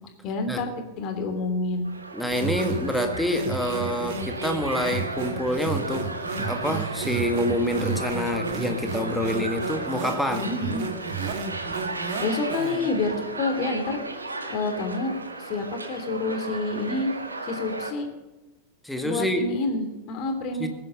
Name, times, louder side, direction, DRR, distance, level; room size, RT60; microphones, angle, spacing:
voice 1, 0.2-1.9 10.3-10.9 12.2-14.0 14.5-15.1 15.4-17.1 17.4-18.1 19.0-20.7, left 3 dB, 40° left, 6 dB, 2.9 m, -28 dB
sound 1, 1.8-17.9, right 2 dB, 80° right, 1.8 m, -35 dB
voice 2, 2.1-6.1 6.4-10.5 18.8-19.5 20.6-20.7, left 1 dB, 5° left, 5 dB, 1.9 m, -27 dB
sound 2, 2.3-12.9, right 5 dB, 50° right, 2.2 m, -32 dB
18.5 x 9.6 x 6.9 m, 1.1 s
figure-of-eight pair, 90°, 0 cm